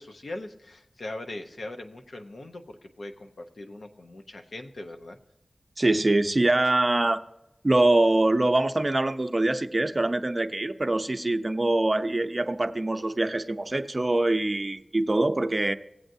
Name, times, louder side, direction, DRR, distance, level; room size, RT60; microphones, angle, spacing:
voice 1, 0.0-5.2, left 2 dB, 75° left, 5 dB, 0.8 m, -40 dB
voice 2, 5.8-7.2 7.6-15.7, right 2 dB, 35° right, 8 dB, 0.7 m, -24 dB
19.0 x 7.7 x 2.7 m, 0.89 s
wide cardioid pair, 55°, 0 cm